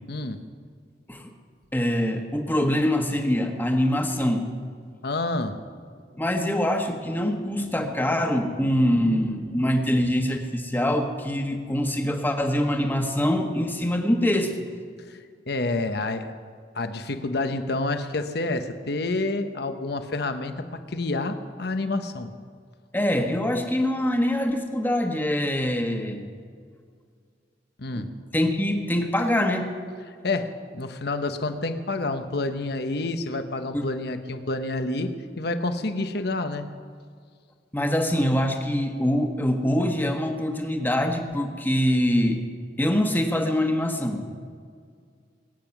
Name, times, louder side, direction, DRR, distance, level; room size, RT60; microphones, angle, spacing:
voice 1, 0.1-0.4 5.0-5.6 15.1-15.2 15.5-16.3 16.7-22.3 27.8-28.1 30.2-36.7, left 2 dB, 65° left, 8 dB, 1.1 m, -28 dB
voice 2, 1.7-4.5 6.2-14.6 22.9-26.3 27.9-29.7 33.7-33.9 37.7-42.4 42.8-44.3, left 1 dB, 10° left, 4 dB, 1.4 m, -24 dB
22.0 x 9.2 x 6.0 m, 2.1 s
head